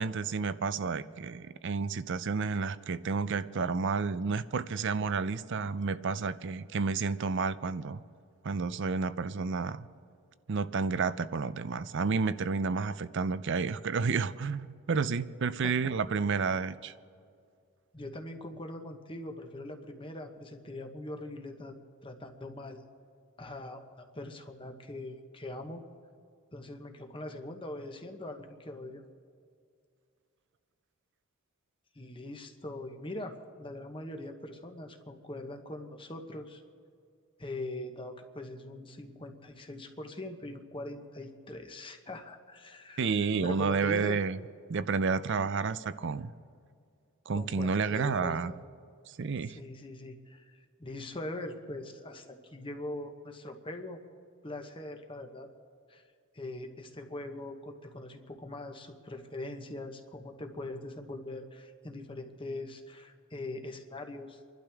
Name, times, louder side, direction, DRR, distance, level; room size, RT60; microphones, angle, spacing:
voice 1, 0.0-8.0 8.4-9.9 10.5-16.9 43.0-44.4 44.7-46.3 47.3-48.5 49.1-49.6, right 5 dB, 55° right, 15 dB, 0.5 m, -30 dB
voice 2, 17.9-21.8 22.0-22.8 23.4-23.8 24.1-25.8 26.5-29.0 31.9-36.6 37.4-44.2 47.3-48.6 49.5-54.0 54.4-55.5 55.9-56.0 56.3-64.4, left 1 dB, 25° left, 5 dB, 1.0 m, -42 dB
30.0 x 12.0 x 3.5 m, 2.3 s
head